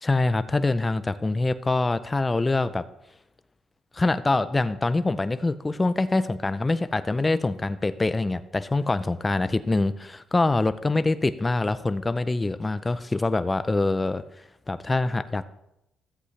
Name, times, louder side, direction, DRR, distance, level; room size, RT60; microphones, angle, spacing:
voice 1, 0.0-2.8 3.9-14.2 14.7-15.4, left 2 dB, 20° left, 13 dB, 0.5 m, -24 dB
13.5 x 8.0 x 3.3 m, 0.85 s
cardioid pair, 90°, 0 cm